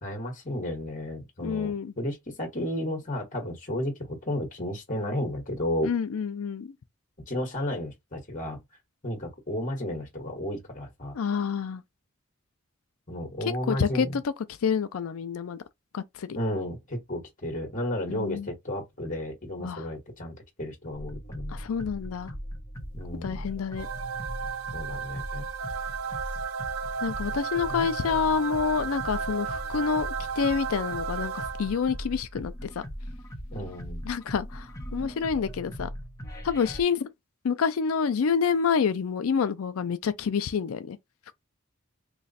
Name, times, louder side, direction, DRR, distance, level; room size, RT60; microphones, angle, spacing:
voice 1, 0.0-5.9 7.3-8.6 9.0-11.1 13.1-14.2 16.3-21.6 22.9-23.4 24.7-25.4 27.7-27.9 33.5-34.0, left 1 dB, 35° left, 1.3 m, -33 dB
voice 2, 1.4-1.9 5.8-6.7 11.1-11.8 13.7-14.2 14.6-15.6 15.9-16.4 18.1-18.5 19.6-19.8 21.5-22.3 23.2-23.9 27.0-32.7 34.1-35.9 36.4-37.1 37.4-41.0, left 6 dB, 70° left, 0.4 m, -28 dB
sound 1, 20.9-36.8, equal, 15° left, 0.9 m, -39 dB
sound 2, 23.8-32.0, right 6 dB, 70° right, 0.5 m, -34 dB
3.1 x 2.4 x 4.0 m
head